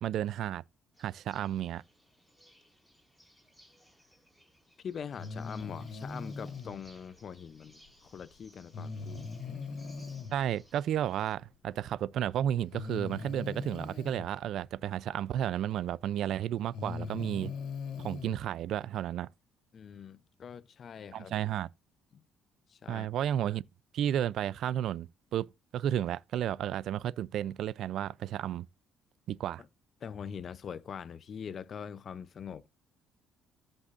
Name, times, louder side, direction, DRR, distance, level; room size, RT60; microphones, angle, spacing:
voice 1, 0.0-0.6 1.0-1.8 10.3-17.5 18.0-19.3 21.1-21.7 22.9-23.6 23.9-25.5 25.7-28.7 29.3-29.6, right 11 dB, 65° right, 0.4 m, -32 dB
sound 1, 0.9-11.3, equal, 5° left, 5.0 m, -62 dB
voice 2, 4.8-9.3 19.7-21.3 22.7-23.1 30.0-32.7, left 7 dB, 45° left, 0.6 m, -43 dB
Breathing, 5.1-6.7 8.7-10.3 11.7-11.8 12.7-14.3 15.8-15.9 16.6-18.4, left 4 dB, 70° left, 2.4 m, -40 dB
14.0 x 5.4 x 2.5 m
cardioid pair, 115°, 0 cm